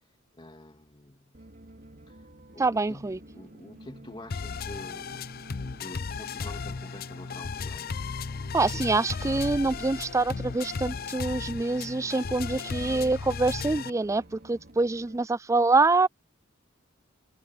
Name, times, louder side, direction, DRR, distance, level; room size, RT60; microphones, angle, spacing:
voice 1, 0.3-1.4 2.1-2.3 2.5-5.3 5.6-7.9, left 1 dB, 25° left, 2.9 m, -47 dB
pd guitare, 1.3-15.2, right 1 dB, 50° right, 3.3 m, -51 dB
voice 2, 2.6-3.2 8.5-16.1, right 3 dB, 15° right, 0.3 m, -25 dB
sound 1, 4.3-13.9, left 5 dB, 45° left, 0.5 m, -35 dB
sound 2, 9.3-14.4, equal, 80° right, 6.2 m, -48 dB
head